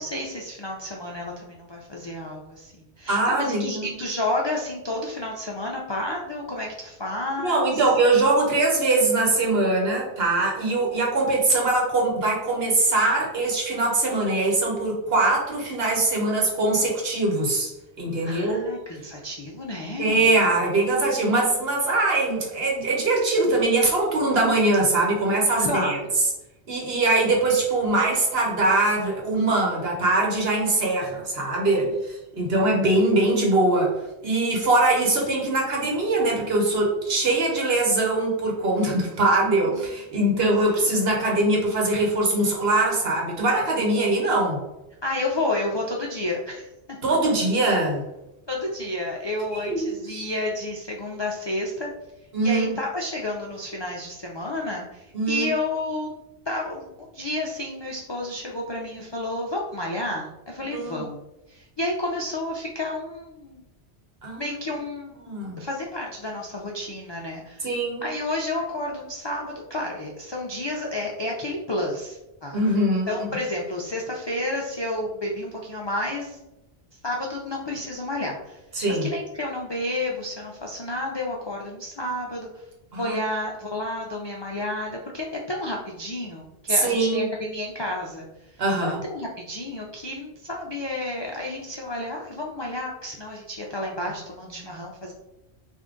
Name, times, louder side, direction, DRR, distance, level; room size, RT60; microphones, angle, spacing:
voice 1, 0.0-7.8 18.2-20.3 25.6-26.0 31.8-31.9 39.7-39.8 44.0-44.1 45.0-47.0 48.5-51.9 52.4-56.1 56.5-61.2 61.5-63.6 64.3-67.7 68.0-72.6 73.1-76.4 77.0-78.6 78.9-82.5 83.0-88.3 88.8-95.1, left 1 dB, 45° left, -1 dB, 0.3 m, -31 dB
voice 2, 3.1-3.9 7.4-17.7 18.0-18.6 20.0-26.0 26.7-33.9 34.2-44.6 47.0-48.0 49.5-50.3 52.3-52.8 55.1-55.5 60.7-61.0 64.2-64.5 65.2-65.6 67.6-68.1 72.5-73.1 78.7-79.1 82.9-83.2 86.7-87.3 88.6-89.0, right 2 dB, 65° right, -1 dB, 1.2 m, -22 dB
3.5 x 2.6 x 3.7 m, 0.93 s
omnidirectional pair, 1.1 m